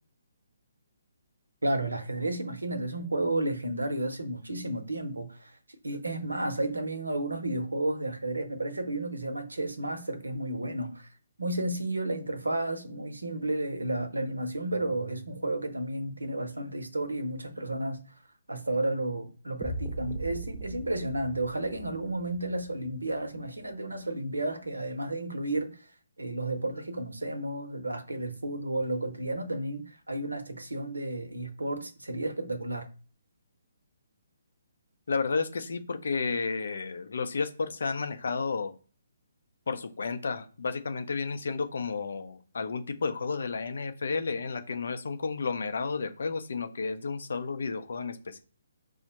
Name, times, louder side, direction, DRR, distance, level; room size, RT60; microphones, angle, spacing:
voice 1, 1.6-5.6 5.8-11.1 11.4-18.0 18.5-25.7 26.2-32.9, right 1 dB, 85° right, 0.6 m, -32 dB
sound 1, 19.6-23.6, right 2 dB, 10° right, 0.4 m, -40 dB
voice 2, 35.1-38.7 39.7-48.4, left 4 dB, 65° left, 0.5 m, -32 dB
4.8 x 2.1 x 2.9 m
figure-of-eight pair, 140°, 0 cm